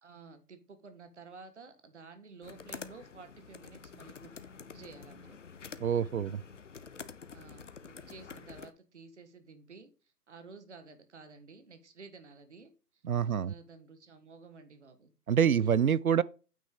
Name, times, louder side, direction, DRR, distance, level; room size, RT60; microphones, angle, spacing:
voice 1, 0.0-4.4 4.7-5.4 7.3-9.9 10.3-12.7 13.2-15.1, right 4 dB, 45° right, 1.6 m, -52 dB
sound 1, 2.4-8.7, left 5 dB, 50° left, 0.7 m, -48 dB
voice 2, 5.8-6.4 13.0-13.5 15.3-16.2, right 8 dB, 60° right, 0.6 m, -26 dB
9.1 x 5.4 x 4.9 m
figure-of-eight pair, 165°, 48 cm